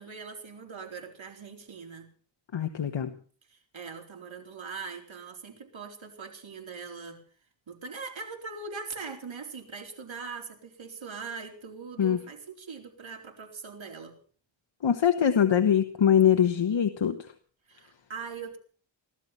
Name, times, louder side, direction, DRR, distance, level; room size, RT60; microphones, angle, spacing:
voice 1, 0.0-2.1 3.5-7.2 7.7-14.1 17.7-18.6, right 5 dB, 75° right, 2 dB, 4.3 m, -41 dB
voice 2, 2.5-3.1 12.0-12.2 14.8-17.2, left 8 dB, 70° left, 7 dB, 1.4 m, -23 dB
18.5 x 12.5 x 6.0 m, 0.43 s
wide cardioid pair, 75°, 47 cm